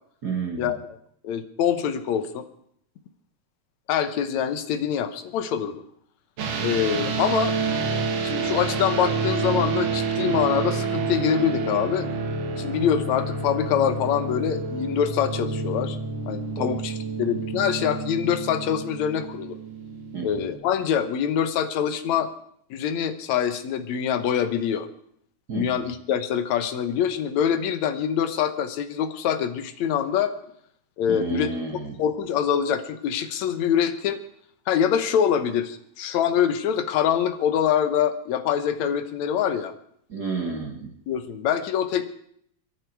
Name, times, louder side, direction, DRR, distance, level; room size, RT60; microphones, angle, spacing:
voice 1, 0.2-0.7 16.6-16.7 20.1-20.4 25.5-25.8 31.1-32.0 40.1-40.9, right 5 dB, 40° right, 1 dB, 1.8 m, -31 dB
voice 2, 1.2-2.5 3.9-5.8 6.6-7.5 8.2-12.1 12.6-16.0 16.3-19.6 20.2-22.3 22.7-24.9 25.5-30.3 31.0-31.5 32.0-34.2 34.7-39.7 41.1-42.1, left 8 dB, 70° left, 11 dB, 2.3 m, -24 dB
sound 1, 6.4-20.6, right 4 dB, 85° right, 3.4 m, -28 dB
25.0 x 11.0 x 4.7 m, 0.68 s
omnidirectional pair, 3.4 m